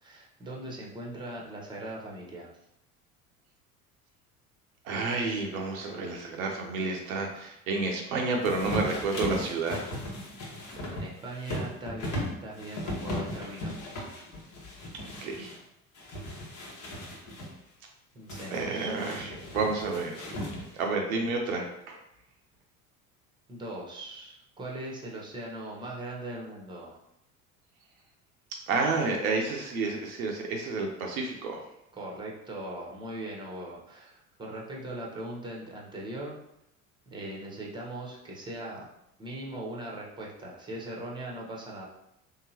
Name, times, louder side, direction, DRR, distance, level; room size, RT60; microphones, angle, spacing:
voice 1, 0.0-2.5 10.8-13.8 18.1-19.0 23.5-27.0 31.9-36.4 37.1-38.9 39.2-41.9, right 1 dB, 10° right, -2 dB, 0.9 m, -40 dB
voice 2, 4.8-9.9 15.0-15.5 18.5-20.3 20.7-22.0 28.7-31.6, right 3 dB, 75° right, 1 dB, 0.7 m, -30 dB
sound 1, 8.4-15.6 15.9-17.5 18.3-20.9, left 1 dB, 45° left, 1.2 m, -37 dB
3.5 x 2.8 x 2.8 m, 0.81 s
figure-of-eight pair, 65°, 43 cm